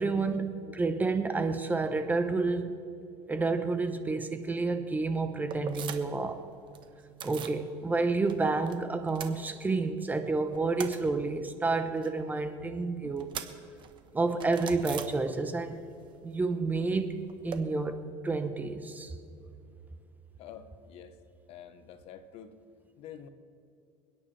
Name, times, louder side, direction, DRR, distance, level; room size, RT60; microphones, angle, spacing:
voice 1, 0.0-2.7 3.3-6.4 7.2-13.3 14.1-15.8 16.2-19.2, right 3 dB, 15° right, 8 dB, 0.8 m, -30 dB
sound 1, 5.5-6.3 6.5-7.6 8.0-8.8 9.0-10.0 10.3-15.7 16.0-17.6, right 8 dB, 45° right, 1.1 m, -43 dB
voice 2, 20.4-21.2 21.5-22.6 23.0-23.3, left 8 dB, 60° left, 10 dB, 1.1 m, -47 dB
28.0 x 10.0 x 3.3 m, 2.5 s
cardioid pair, 135°, 12 cm